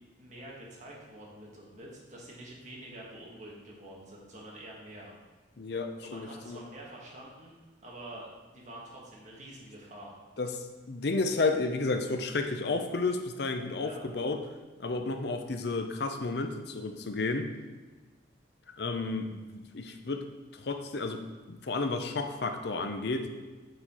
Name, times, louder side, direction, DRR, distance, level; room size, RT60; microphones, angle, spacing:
voice 1, 0.2-5.2 6.0-7.6 7.8-10.2 13.8-14.0, right 1 dB, 40° right, -4 dB, 1.6 m, -47 dB
voice 2, 5.6-6.6 10.4-14.4 14.8-17.5 18.8-20.2 20.5-21.2 21.5-23.3, left 3 dB, 60° left, 6 dB, 0.6 m, -32 dB
6.9 x 4.2 x 4.3 m, 1.3 s
head